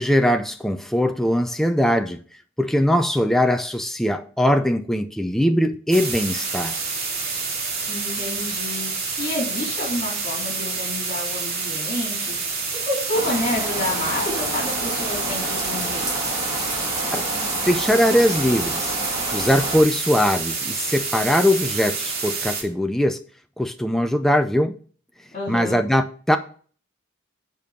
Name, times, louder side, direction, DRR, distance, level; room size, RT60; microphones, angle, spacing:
voice 1, 0.0-2.2 2.6-6.8 17.1-17.2 17.7-18.9 19.3-23.2 23.6-24.7 25.5-26.4, equal, ahead, 6 dB, 0.5 m, -21 dB
sound 1, 5.9-22.6, right 4 dB, 50° right, 2.5 m, -28 dB
voice 2, 7.9-8.9 9.2-12.5 12.9-16.1 25.3-25.8, left 1 dB, 35° left, -2 dB, 3.6 m, -29 dB
sound 2, 13.1-19.8, equal, 20° right, 3.1 m, -30 dB
9.2 x 5.3 x 5.1 m, 0.42 s
head